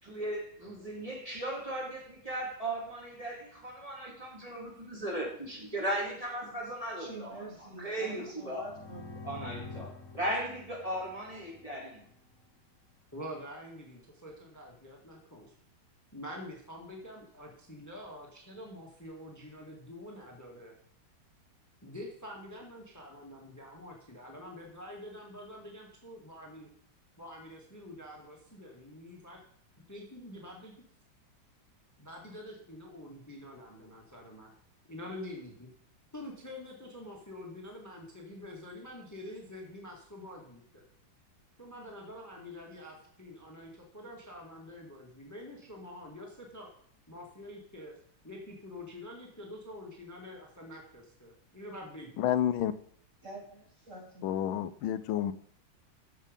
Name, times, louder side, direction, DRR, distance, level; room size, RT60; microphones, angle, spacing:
voice 1, 0.0-7.4 7.8-8.6 9.2-12.0, right 1 dB, 15° right, -3 dB, 3.6 m, -37 dB
voice 2, 7.0-9.2 53.2-54.3, right 2 dB, 35° right, -1 dB, 3.5 m, -46 dB
sound 1, 8.5-12.2, left 3 dB, 45° left, 1.4 m, -47 dB
voice 3, 13.1-15.6 16.1-20.7 21.8-26.7 27.2-29.4 29.9-30.7 32.0-34.5 34.9-35.7 36.1-40.8 41.6-46.7 47.1-48.0 48.2-52.3, left 1 dB, 10° left, 0 dB, 1.9 m, -46 dB
voice 4, 52.2-52.7 54.2-55.3, left 10 dB, 90° left, 14 dB, 1.4 m, -29 dB
14.5 x 6.4 x 5.3 m, 0.62 s
omnidirectional pair, 2.2 m